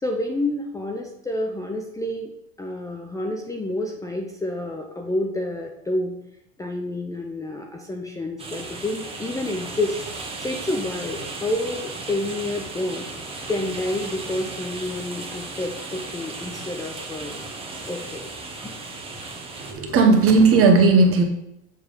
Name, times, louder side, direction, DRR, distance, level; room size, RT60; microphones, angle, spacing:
voice 1, 0.0-2.3 2.6-6.2 6.6-9.9 10.4-13.1 13.5-17.5 17.9-18.3, left 1 dB, 10° left, 2 dB, 0.5 m, -29 dB
Hail on roof, 8.4-19.7, right 3 dB, 15° right, 1.2 m, -35 dB
voice 2, 19.6-21.2, right 3 dB, 40° right, 4 dB, 1.2 m, -15 dB
7.2 x 3.3 x 5.4 m, 0.81 s
supercardioid pair, 115°, 35 cm